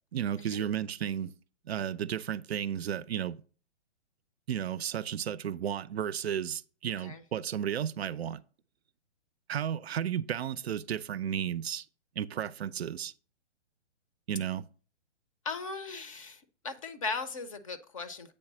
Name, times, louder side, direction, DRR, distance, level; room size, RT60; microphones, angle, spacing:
voice 1, 0.1-1.3 1.7-3.4 4.5-8.4 9.5-11.9 12.2-13.1 14.3-14.7, right 9 dB, 60° right, 0.5 m, -33 dB
voice 2, 15.4-18.3, left 4 dB, 30° left, 0.6 m, -38 dB
8.3 x 3.2 x 6.0 m
hypercardioid pair, 160°, 35 cm